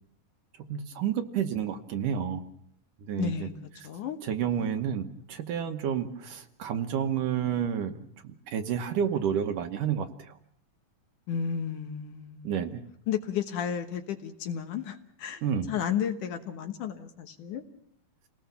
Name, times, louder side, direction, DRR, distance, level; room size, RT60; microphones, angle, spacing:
voice 1, 0.7-2.4 3.1-3.5 4.2-10.4 12.4-12.8 15.4-15.7, right 8 dB, 70° right, 7 dB, 2.4 m, -30 dB
voice 2, 3.2-3.5 3.8-4.2 4.5-4.7 11.3-12.5 13.1-17.6, left 8 dB, 65° left, 7 dB, 2.5 m, -33 dB
29.0 x 18.5 x 7.0 m, 0.69 s
omnidirectional pair, 4.4 m